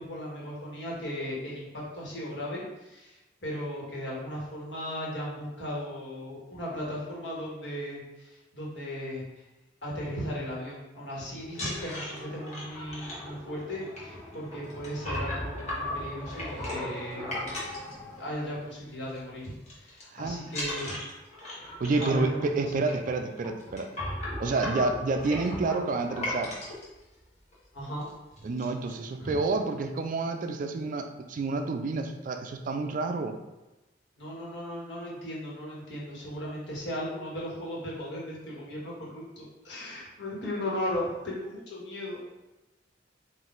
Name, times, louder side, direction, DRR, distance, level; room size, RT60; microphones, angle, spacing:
voice 1, 0.0-3.1 3.4-9.2 9.8-17.6 18.0-21.0 22.0-22.4 27.7-28.0 28.4-28.5 29.2-29.4 34.2-42.2, equal, 70° left, -5 dB, 1.4 m, -36 dB
sound 1, 11.5-18.6 18.9-19.2 19.4-20.0 20.5-26.8 27.5-27.6 27.9-28.1 28.4-28.9, left 1 dB, 40° left, 1.2 m, -37 dB
voice 2, 21.8-23.9 24.4-26.5 28.4-33.4, right 3 dB, 45° right, 6 dB, 0.3 m, -29 dB
3.9 x 2.5 x 3.8 m, 1.0 s
head